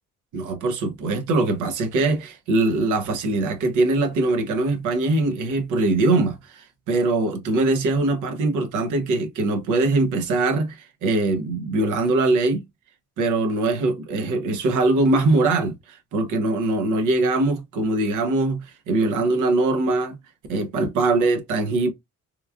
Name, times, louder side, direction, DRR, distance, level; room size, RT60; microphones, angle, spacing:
voice 1, 0.3-12.6 13.2-20.2 20.5-21.9, right 2 dB, 85° right, 0.8 m, -22 dB
3.0 x 2.3 x 2.3 m
cardioid pair, 90°, 30 cm